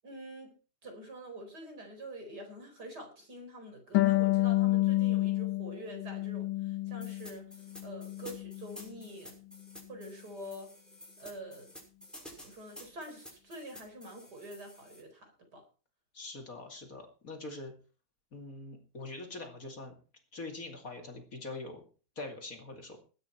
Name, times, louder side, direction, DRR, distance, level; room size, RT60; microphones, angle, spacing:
voice 1, 0.0-0.5 0.8-7.4 7.8-9.4 9.9-10.7 11.2-11.7 12.3-15.6, right 1 dB, 60° right, 4 dB, 5.2 m, -46 dB
Harp, 3.9-7.3 7.7-8.8, left 17 dB, 85° left, 1.7 m, -29 dB
sound 1, 7.0-15.0, left 1 dB, ahead, 6.1 m, -51 dB
voice 2, 16.1-17.7 18.3-19.9 20.3-21.9 22.2-23.0, left 2 dB, 45° left, 3 dB, 2.9 m, -43 dB
20.0 x 9.7 x 4.6 m, 0.38 s
omnidirectional pair, 2.0 m